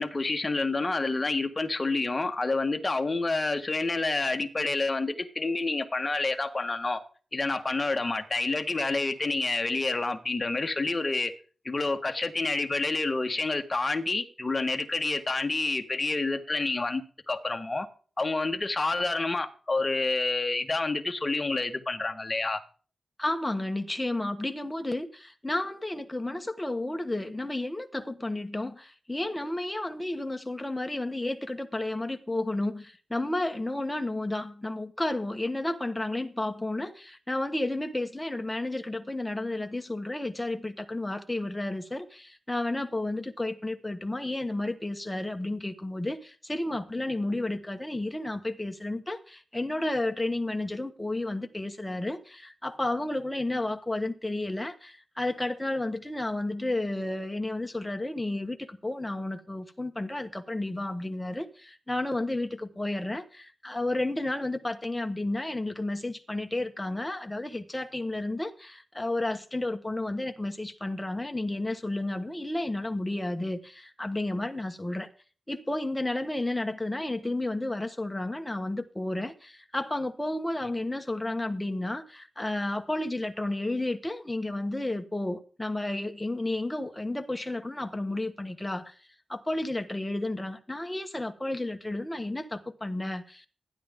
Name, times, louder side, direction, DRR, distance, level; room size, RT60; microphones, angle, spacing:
voice 1, 0.0-7.0 7.3-11.3 11.6-17.9 18.2-22.6, left 3 dB, 30° left, 1.5 m, -28 dB
voice 2, 23.2-75.1 75.5-89.0 89.3-93.5, left 2 dB, 10° left, 1.4 m, -32 dB
14.5 x 10.5 x 3.7 m
wide cardioid pair, 90°, 0 cm